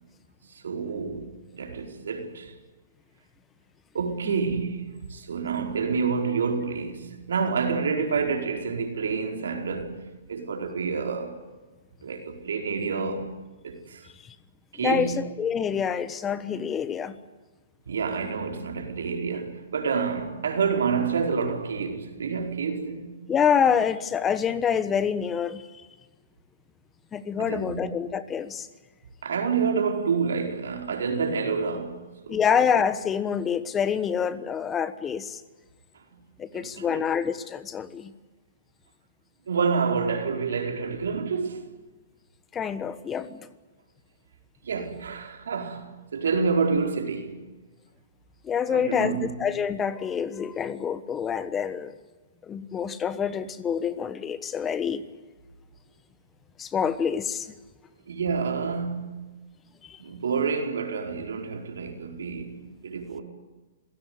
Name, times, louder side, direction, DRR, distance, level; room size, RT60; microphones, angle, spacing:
voice 1, 0.5-2.5 3.9-10.0 10.3-11.4 12.0-13.3 13.6-14.1 14.7-15.2 17.8-23.2 27.4-27.8 29.2-32.4 35.9-36.2 36.5-37.1 39.5-41.7 44.6-47.4 48.7-49.4 58.1-59.2 60.0-63.2, right 5 dB, 80° right, 4.7 m, -28 dB
voice 2, 14.8-17.1 23.3-25.8 27.1-28.7 32.3-35.4 36.4-38.1 42.5-43.5 48.4-51.9 52.5-55.0 56.6-57.5 59.8-60.0, left 7 dB, 15° left, 1.2 m, -27 dB
27.5 x 16.5 x 9.5 m
hypercardioid pair, 145°, 0 cm